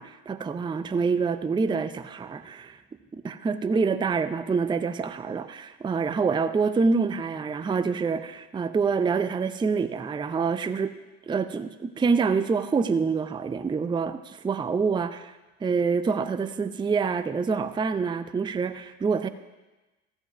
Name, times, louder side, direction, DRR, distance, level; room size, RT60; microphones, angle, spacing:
voice 1, 0.0-2.8 3.1-10.9 11.3-19.3, right 5 dB, 10° right, 11 dB, 0.5 m, -26 dB
14.0 x 5.3 x 6.0 m, 1.1 s
hypercardioid pair, 60°, 38 cm